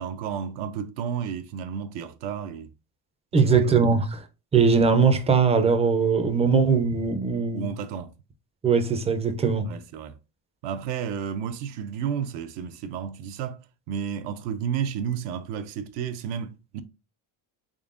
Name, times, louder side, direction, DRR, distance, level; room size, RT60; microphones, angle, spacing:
voice 1, 0.0-2.7 3.4-3.7 7.5-8.1 9.6-10.2 10.6-13.6 13.9-16.8, right 8 dB, 80° right, 0.6 m, -32 dB
voice 2, 3.3-4.2 4.5-7.7 8.6-9.7, right 5 dB, 15° right, 0.4 m, -21 dB
3.8 x 3.5 x 2.4 m
cardioid pair, 130°, 42 cm